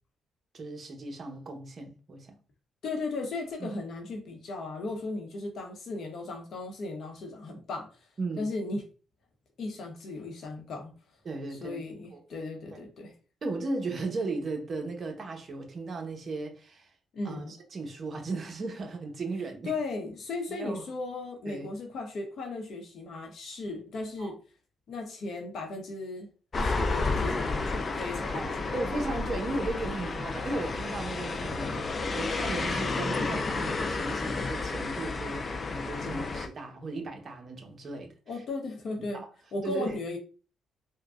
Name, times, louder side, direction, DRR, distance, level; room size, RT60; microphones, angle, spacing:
voice 1, 0.5-2.4 3.6-3.7 8.2-8.5 11.2-11.8 12.1-12.2 12.7-12.8 13.4-16.9 17.2-19.7 20.5-20.9 21.5-21.7 24.2-24.3 28.3-38.1 39.1-39.3 39.6-39.9, right 3 dB, 45° right, 0.9 m, -36 dB
voice 2, 2.8-7.9 8.4-8.8 9.6-10.9 11.5-13.1 17.1-17.5 19.7-24.4 24.9-26.3 26.6-28.7 36.0-36.2 38.3-39.2 39.5-40.2, left 3 dB, 65° left, 0.9 m, -36 dB
sound 1, 26.5-36.5, left 3 dB, 40° left, 0.4 m, -31 dB
3.8 x 2.2 x 2.4 m
cardioid pair, 90°, 0 cm